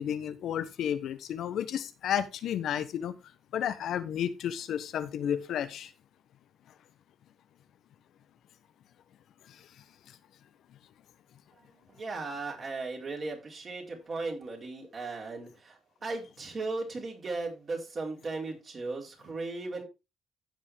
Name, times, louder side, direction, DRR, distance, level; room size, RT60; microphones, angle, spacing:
voice 1, 0.0-3.1 3.5-5.9 9.5-9.6, left 9 dB, 75° left, 1.1 m, -32 dB
voice 2, 11.9-19.8, right 3 dB, 40° right, 4.6 m, -37 dB
15.0 x 5.4 x 3.6 m
cardioid pair, 90°, 0 cm